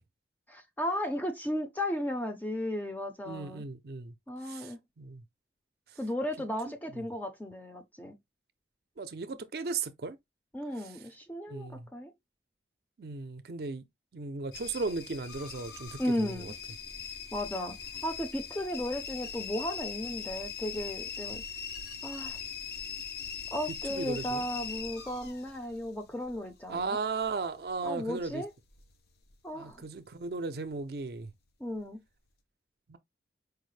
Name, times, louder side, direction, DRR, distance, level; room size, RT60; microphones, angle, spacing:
voice 1, 0.5-3.6 4.3-4.8 6.0-8.2 10.5-12.1 16.0-16.5 17.3-17.8 18.0-21.4 22.0-22.4 23.5-27.0 27.8-28.5 29.4-29.8 31.6-32.0, left 1 dB, 10° left, 0.5 m, -35 dB
voice 2, 3.3-4.1 4.4-5.2 6.9-7.0 9.0-10.2 11.5-11.9 13.0-13.8 14.1-16.5 23.9-24.4 26.7-28.4 29.5-31.3 32.9-33.0, right 4 dB, 60° right, 0.5 m, -36 dB
sound 1, 14.5-29.4 29.7-30.3 30.8-31.3 31.7-31.8, left 6 dB, 60° left, 0.6 m, -41 dB
4.7 x 2.1 x 3.1 m
head